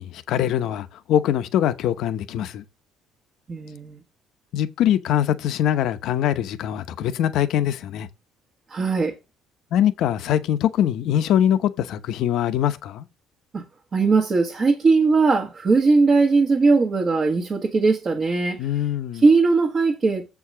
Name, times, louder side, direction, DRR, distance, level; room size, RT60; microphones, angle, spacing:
voice 1, 0.0-2.6 4.5-8.1 9.7-13.1 18.6-19.2, left 10 dB, 60° left, 0.9 m, -23 dB
voice 2, 3.5-4.0 8.7-9.1 13.5-13.6 13.9-18.6 19.1-20.2, right 4 dB, 25° right, 1.3 m, -19 dB
7.9 x 4.7 x 6.1 m
cardioid pair, 175°, 0 cm